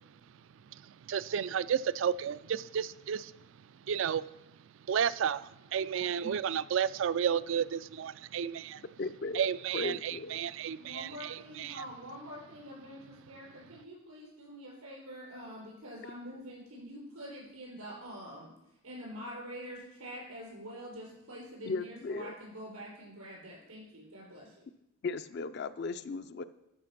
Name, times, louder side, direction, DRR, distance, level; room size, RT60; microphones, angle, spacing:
voice 1, 0.8-3.3 3.9-4.2 4.9-8.8 9.3-11.9, right 8 dB, 60° right, 17 dB, 0.3 m, -32 dB
voice 2, 9.0-10.4 21.6-22.3 25.0-26.4, left 3 dB, 50° left, 12 dB, 0.4 m, -37 dB
voice 3, 10.8-18.5 18.8-24.6, equal, 85° right, -3 dB, 4.6 m, -46 dB
12.5 x 5.1 x 5.8 m, 0.84 s
head